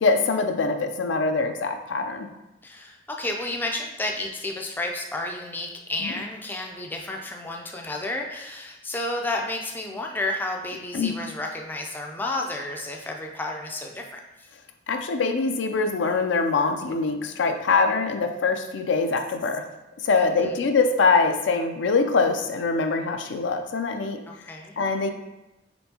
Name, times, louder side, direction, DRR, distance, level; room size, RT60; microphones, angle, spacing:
voice 1, 0.0-2.3 6.0-6.1 10.9-11.2 14.9-19.6 20.0-24.2 24.8-25.1, left 4 dB, 75° left, 6 dB, 0.4 m, -23 dB
voice 2, 2.6-14.2 20.2-20.5 24.3-24.8, left 2 dB, 10° left, 1 dB, 0.3 m, -31 dB
4.4 x 3.6 x 2.7 m, 0.99 s
head